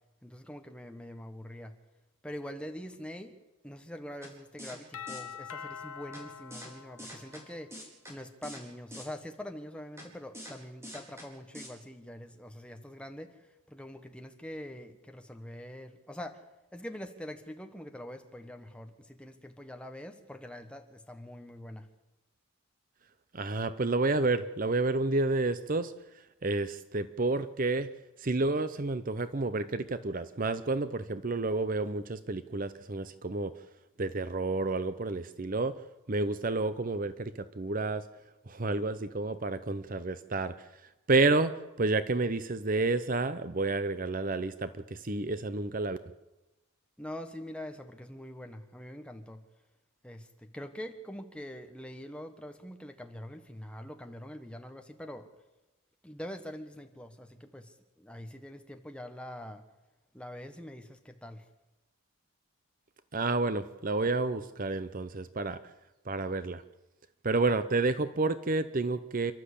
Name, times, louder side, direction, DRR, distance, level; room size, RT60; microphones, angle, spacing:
voice 1, 0.2-1.7 2.2-3.4 3.6-7.7 8.1-16.4 16.7-21.9 47.0-49.4 50.0-50.3 50.5-55.3 56.0-59.6 60.1-61.4, left 1 dB, 5° left, 6 dB, 1.4 m, -44 dB
sound 1, 4.2-4.3 4.6-4.8 5.1-5.2 6.1-6.2 6.5-6.7 7.0-7.4 7.7-8.1 8.4-8.6 8.9-9.1 10.0-10.1 10.3-10.5 10.8-11.3 11.5-11.7, equal, 10° right, 4.4 m, -44 dB
Doorbell, 4.9-7.8, left 7 dB, 75° left, 0.8 m, -44 dB
voice 2, 23.3-25.9 26.4-27.9 28.2-33.5 34.0-35.8 36.1-38.1 38.5-40.7 41.1-46.0 63.1-65.6 66.1-66.6 67.2-69.3, right 3 dB, 40° right, 13 dB, 0.7 m, -30 dB
28.5 x 12.5 x 8.4 m, 1.0 s
head